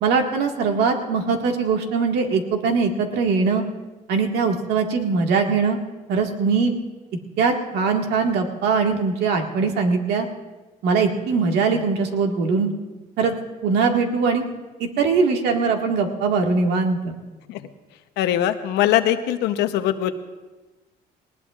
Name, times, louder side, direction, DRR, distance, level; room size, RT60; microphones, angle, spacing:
voice 1, 0.0-3.6 4.1-5.8 6.1-6.7 7.4-10.3 10.8-12.7 13.2-13.3 13.6-14.5 14.8-17.1, right 5 dB, 80° right, 2 dB, 1.8 m, -21 dB
voice 2, 18.2-20.1, left 12 dB, 90° left, 9 dB, 0.9 m, -21 dB
19.5 x 19.0 x 2.5 m, 1.2 s
cardioid pair, 110°, 17 cm